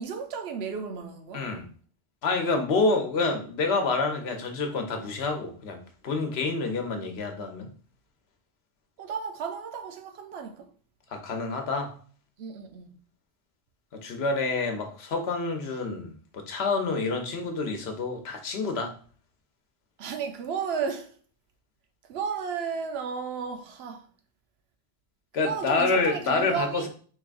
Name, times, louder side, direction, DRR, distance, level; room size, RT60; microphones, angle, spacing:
voice 1, 0.0-1.5 9.0-10.7 12.4-13.0 20.0-21.1 22.1-24.1 25.4-26.9, right 6 dB, 75° right, 0.9 m, -33 dB
voice 2, 1.3-1.7 2.2-5.8 6.0-7.7 11.1-11.9 13.9-18.9 25.3-26.9, left 3 dB, 75° left, 1.0 m, -28 dB
4.6 x 3.5 x 2.5 m
omnidirectional pair, 1.1 m